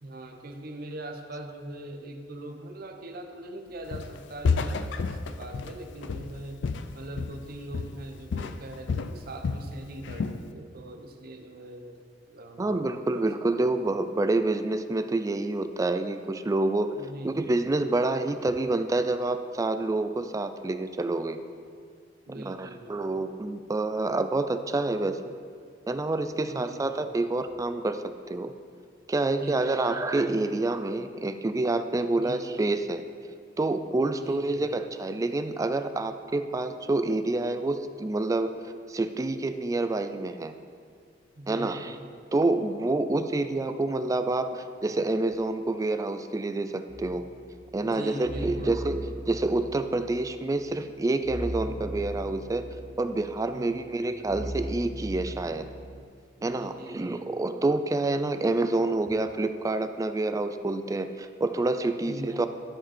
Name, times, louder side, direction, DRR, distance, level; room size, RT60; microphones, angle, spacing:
voice 1, 0.0-6.6 6.9-12.8 13.1-13.3 17.0-17.5 22.3-23.3 26.5-26.9 29.3-30.7 32.2-32.6 34.2-34.6 41.4-42.0 47.8-49.3 53.5-54.1 56.4-57.6 62.1-62.5, right 1 dB, 55° right, 5 dB, 0.8 m, -42 dB
Walk footsteps, 3.9-4.2 4.4-7.5 7.7-8.1 8.3-9.7 10.0-10.4, left 4 dB, 70° left, 0.4 m, -30 dB
voice 2, 12.6-16.9 17.2-21.4 22.3-25.3 25.9-28.5 29.1-33.0 33.6-38.5 38.9-40.5 41.5-42.0 42.3-47.2 47.7-52.7 53.0-55.7 56.4-62.5, right 2 dB, 20° right, 9 dB, 0.3 m, -28 dB
sound 1, 46.9-56.0, right 1 dB, 90° right, 1.0 m, -39 dB
12.5 x 5.2 x 4.3 m, 2.2 s
head